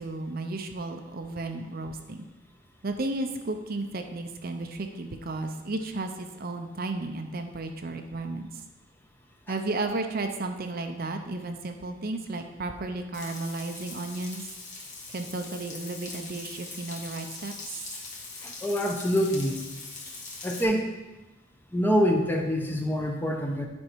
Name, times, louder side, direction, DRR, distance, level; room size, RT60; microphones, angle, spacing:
voice 1, 0.0-2.3 2.8-8.5 9.5-14.4 15.1-17.8, right 2 dB, 55° right, 5 dB, 0.7 m, -33 dB
Frying (food), 13.1-20.6, left 3 dB, 45° left, 1.8 m, -41 dB
voice 2, 18.4-19.6 20.4-20.8 21.7-23.7, equal, 10° left, 2 dB, 0.9 m, -25 dB
9.7 x 5.3 x 4.6 m, 1.1 s
head